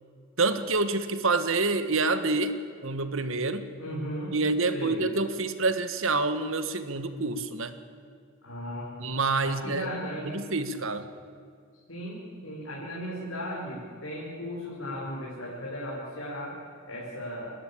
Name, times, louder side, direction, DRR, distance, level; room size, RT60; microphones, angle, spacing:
voice 1, 0.4-2.5 2.8-3.6 4.3-7.7 9.0-9.9 10.2-11.1, right 3 dB, 65° right, 10 dB, 1.5 m, -27 dB
voice 2, 3.8-4.4 4.7-5.0 8.4-8.9 9.4-10.4 11.9-16.5 16.9-17.5, equal, 65° left, -5 dB, 5.1 m, -36 dB
28.5 x 12.5 x 8.6 m, 2.3 s
head